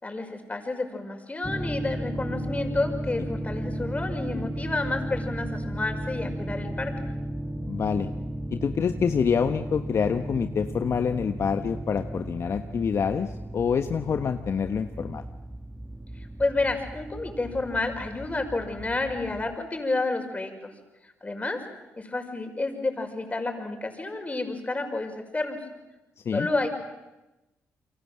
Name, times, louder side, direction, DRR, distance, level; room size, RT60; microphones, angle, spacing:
voice 1, 0.0-6.9 16.4-20.7 21.0-21.6 22.0-25.6 26.3-26.7, left 2 dB, 25° left, 5 dB, 5.7 m, -30 dB
sound 1, 1.4-19.6, right 1 dB, 10° right, 1.9 m, -35 dB
voice 2, 7.7-8.1 8.5-15.2 26.2-26.5, left 6 dB, 55° left, 7 dB, 1.2 m, -26 dB
29.0 x 23.5 x 7.7 m, 1.0 s
supercardioid pair, 60°, 5 cm